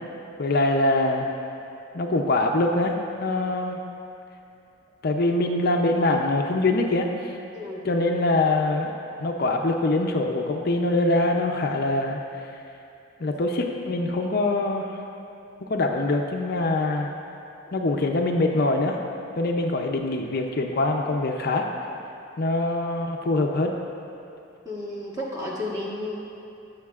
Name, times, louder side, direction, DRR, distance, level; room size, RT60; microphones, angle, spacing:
voice 1, 0.4-1.3 1.9-3.8 5.0-7.3 7.8-8.9 9.2-12.2 13.2-15.0 15.7-17.1 17.7-19.0 19.4-21.7 22.4-23.7, left 2 dB, 45° left, 2 dB, 0.5 m, -23 dB
voice 2, 7.5-7.9 24.6-26.2, left 1 dB, 15° right, -5 dB, 1.2 m, -32 dB
17.0 x 6.4 x 2.4 m, 2.7 s
head